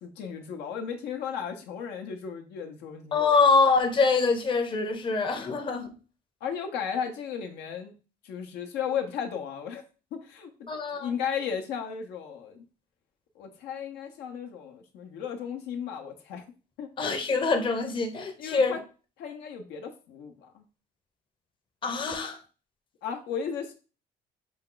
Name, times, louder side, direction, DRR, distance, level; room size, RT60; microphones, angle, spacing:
voice 1, 0.0-3.4 6.4-7.9 8.2-9.8 10.1-12.6 13.3-16.4 16.8-16.9 18.4-18.8 19.2-20.6 23.0-23.7, left 7 dB, 85° left, 0.9 m, -35 dB
voice 2, 3.1-5.9 10.7-11.1 17.0-18.7 21.8-22.4, left 4 dB, 30° left, 0.7 m, -24 dB
5.2 x 2.3 x 3.8 m
cardioid pair, 110°, 17 cm